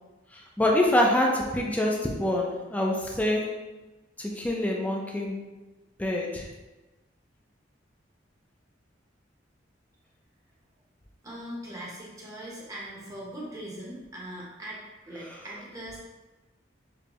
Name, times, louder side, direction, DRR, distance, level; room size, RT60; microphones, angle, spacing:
voice 1, 0.3-3.6 4.2-5.4 6.0-6.5 15.2-15.4, left 1 dB, 10° left, -1 dB, 0.4 m, -26 dB
voice 2, 11.2-14.8 15.1-16.0, right 1 dB, 20° right, -5 dB, 0.7 m, -40 dB
5.2 x 2.1 x 2.9 m, 1.1 s
head